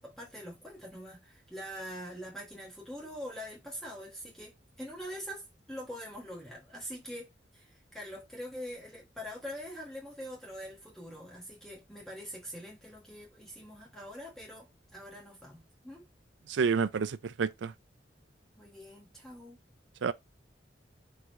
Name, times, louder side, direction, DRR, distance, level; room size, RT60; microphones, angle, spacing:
voice 1, 0.0-16.0 18.5-19.6, equal, ahead, 1.3 m, -44 dB
voice 2, 16.5-17.7 20.0-20.1, right 5 dB, 85° right, 0.4 m, -29 dB
4.8 x 3.7 x 2.9 m
head